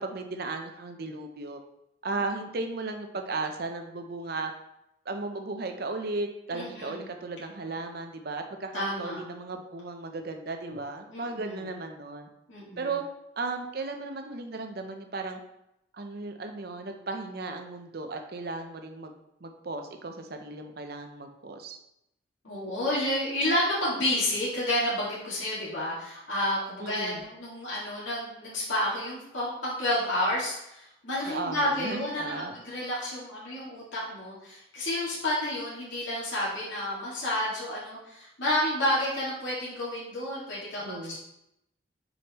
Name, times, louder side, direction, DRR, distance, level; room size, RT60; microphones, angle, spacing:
voice 1, 0.0-1.6 2.0-4.5 5.1-12.3 12.8-13.0 13.4-15.4 15.9-19.1 19.4-21.8 26.8-27.2 31.3-32.5 40.8-41.2, right 3 dB, 55° right, 5 dB, 0.7 m, -35 dB
voice 2, 6.5-7.0 8.7-9.2 11.1-11.6 12.5-12.9 22.4-41.2, left 1 dB, 85° left, -8 dB, 2.1 m, -30 dB
6.3 x 5.1 x 3.0 m, 0.82 s
head